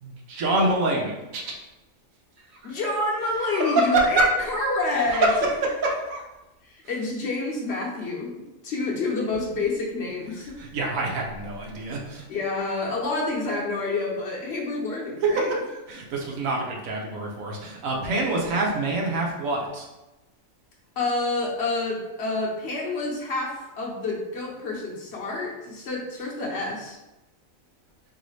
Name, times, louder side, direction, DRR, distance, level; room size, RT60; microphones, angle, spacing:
voice 1, 0.0-1.6 2.5-2.7 3.3-4.3 4.9-6.2 6.8-7.0 10.0-12.3 15.2-19.9, right 2 dB, 85° right, -1 dB, 1.2 m, -26 dB
voice 2, 2.6-5.3 6.6-10.6 12.3-15.5 21.0-27.0, left 2 dB, 55° left, -2 dB, 1.0 m, -28 dB
4.0 x 3.1 x 3.2 m, 1.0 s
omnidirectional pair, 1.4 m